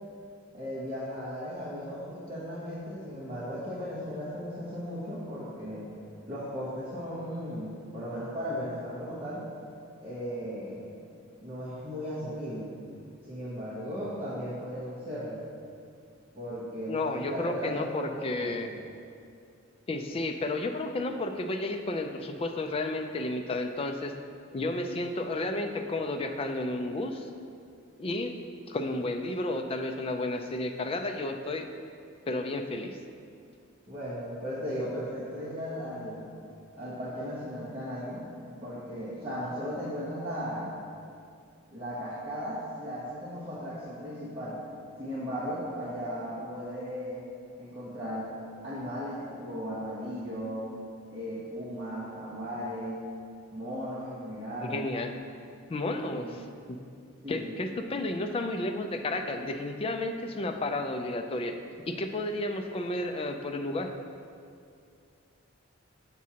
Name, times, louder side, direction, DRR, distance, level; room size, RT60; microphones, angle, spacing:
voice 1, 0.5-5.9 6.3-9.4 10.0-10.8 11.4-12.7 13.3-15.4 16.3-18.8 33.9-36.3 36.8-38.3 38.6-40.8 41.7-44.6 45.0-47.2 47.6-48.3 48.6-50.7 51.1-53.0 53.5-54.9 56.1-56.4 57.2-57.5, equal, 25° right, -11 dB, 1.0 m, -36 dB
voice 2, 16.9-18.7 19.9-24.1 24.5-27.2 28.0-28.4 28.7-31.7 32.3-32.9 54.7-55.1 55.7-56.3 56.7-56.8 57.3-61.5 61.9-63.9, left 2 dB, 25° left, 5 dB, 0.3 m, -32 dB
7.3 x 6.1 x 2.8 m, 2.4 s
head